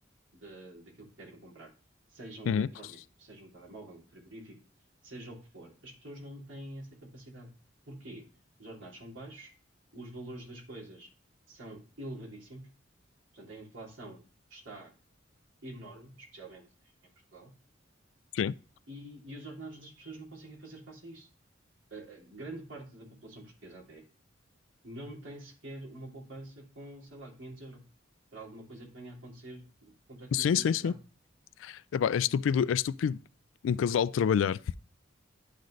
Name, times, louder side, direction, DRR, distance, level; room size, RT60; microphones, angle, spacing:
voice 1, 0.3-1.7 2.1-4.6 5.0-7.5 7.9-8.2 8.6-9.5 9.9-11.1 11.5-12.6 13.3-14.2 14.5-14.9 15.6-16.6 17.3-17.5 18.9-21.3 21.9-24.0 24.8-27.8 28.3-30.9, right 1 dB, 85° right, 2.8 m, -46 dB
voice 2, 30.3-31.0 31.6-33.2 33.6-34.6, left 7 dB, 85° left, 0.3 m, -27 dB
11.5 x 3.9 x 3.1 m
head